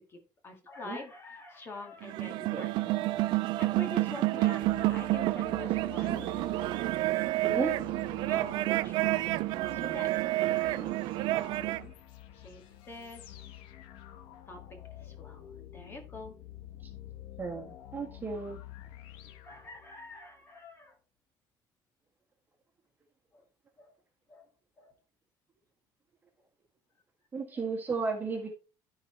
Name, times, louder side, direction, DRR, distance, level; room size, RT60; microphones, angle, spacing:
voice 1, 0.0-6.7 7.5-7.8 8.2-10.9 11.3-12.0 12.3-13.5 14.5-16.4 19.4-21.0 23.3-23.5 23.8-23.9 24.3-24.5 24.8-25.0, left 2 dB, 25° left, 4 dB, 1.9 m, -46 dB
sound 1, 2.0-11.9, right 18 dB, 65° right, 0.3 m, -29 dB
sound 2, 4.6-20.2, left 12 dB, 85° left, 1.1 m, -49 dB
voice 2, 17.4-18.6 27.3-28.5, right 4 dB, 20° right, 3 dB, 1.6 m, -34 dB
14.0 x 4.8 x 3.2 m, 0.32 s
cardioid pair, 170°, 9 cm